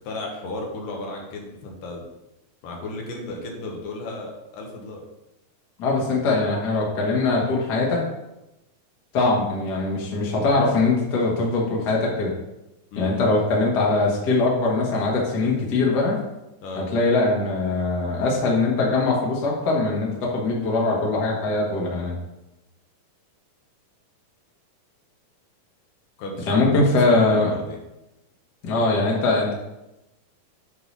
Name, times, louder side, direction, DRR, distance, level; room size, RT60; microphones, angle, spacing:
voice 1, 0.0-2.0 2.6-5.0 12.9-13.2 16.6-16.8 26.2-26.5 26.8-27.8, left 2 dB, 70° left, 0 dB, 2.5 m, -34 dB
voice 2, 5.8-8.0 9.1-12.3 13.0-16.2 16.7-22.2 26.5-27.5 28.6-29.5, left 3 dB, 85° left, -3 dB, 0.9 m, -22 dB
8.0 x 3.4 x 5.2 m, 0.95 s
omnidirectional pair, 4.4 m